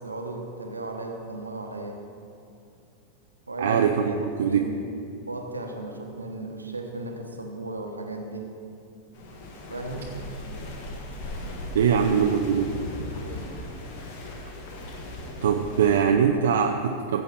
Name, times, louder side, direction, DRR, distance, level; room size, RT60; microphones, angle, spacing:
voice 1, 0.0-2.0 3.5-4.8 5.3-8.5 9.7-10.1 11.9-12.1 12.5-12.9 13.2-13.4, right 2 dB, 80° right, 3 dB, 1.2 m, -36 dB
voice 2, 3.6-4.7 11.7-12.8 15.4-17.2, right 7 dB, 60° right, 3 dB, 0.6 m, -22 dB
sound 1, 9.1-16.0, left 1 dB, 50° left, 1.6 m, -38 dB
15.0 x 7.9 x 4.3 m, 2.5 s
figure-of-eight pair, 90°, 0 cm